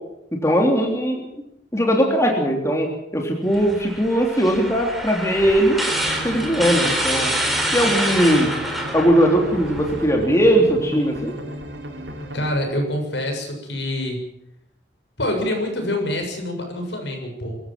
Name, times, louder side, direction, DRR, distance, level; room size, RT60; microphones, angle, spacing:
voice 1, 0.3-1.3 1.7-5.8 6.2-7.3 7.7-8.5 8.9-11.4, equal, 15° left, 2 dB, 3.1 m, -19 dB
sound 1, 3.5-10.0, right 1 dB, ahead, 3.9 m, -26 dB
sound 2, 5.9-12.6, right 1 dB, 75° right, 5.4 m, -35 dB
voice 2, 12.3-14.2 15.2-17.6, left 1 dB, 70° left, 3 dB, 7.2 m, -26 dB
25.5 x 15.0 x 7.4 m, 0.82 s
head